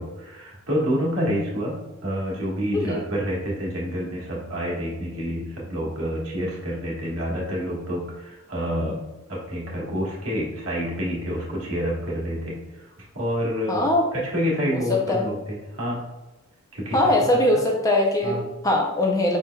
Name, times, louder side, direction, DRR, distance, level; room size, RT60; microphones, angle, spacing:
voice 1, 0.0-9.0 9.3-12.9 13.1-13.8 14.1-16.0 16.7-17.4 18.2-18.4, equal, 75° right, -4 dB, 1.5 m, -28 dB
voice 2, 13.7-14.0 14.7-15.3 16.9-19.4, left 1 dB, 15° left, 0 dB, 0.5 m, -21 dB
4.9 x 4.4 x 2.3 m, 1.0 s
head